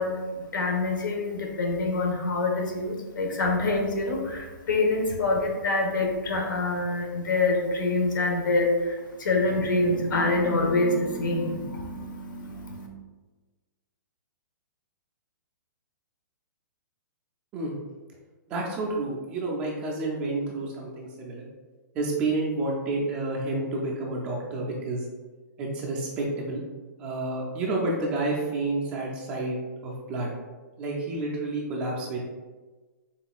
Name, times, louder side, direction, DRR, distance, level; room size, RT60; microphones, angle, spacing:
voice 1, 0.0-12.9, left 2 dB, 75° left, 2 dB, 1.1 m, -26 dB
voice 2, 18.5-21.5 21.9-25.1 25.6-26.6 27.0-29.6 29.8-30.3 30.8-32.2, right 2 dB, 10° right, -3 dB, 0.3 m, -29 dB
5.8 x 3.6 x 2.3 m, 1.3 s
hypercardioid pair, 175°, 11 cm